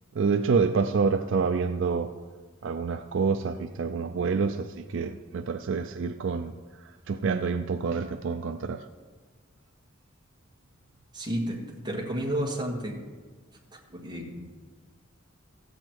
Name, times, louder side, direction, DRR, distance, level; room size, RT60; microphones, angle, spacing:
voice 1, 0.1-2.1 2.6-8.9, right 5 dB, 65° right, 8 dB, 0.4 m, -27 dB
voice 2, 11.1-13.0 13.7-14.4, right 1 dB, 20° right, -1 dB, 1.7 m, -32 dB
15.0 x 7.9 x 4.5 m, 1.5 s
head